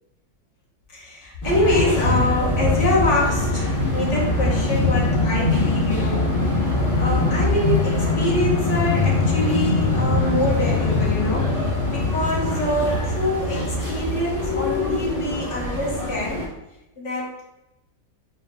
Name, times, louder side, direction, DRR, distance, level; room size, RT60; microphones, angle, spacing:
voice 1, 0.9-6.3 7.0-11.5 11.9-16.4 17.0-17.5, left 1 dB, 50° left, -3 dB, 1.2 m, -25 dB
sound 1, 1.4-16.5, left 2 dB, 15° left, 0.7 m, -22 dB
4.3 x 2.5 x 3.9 m, 0.93 s
omnidirectional pair, 1.8 m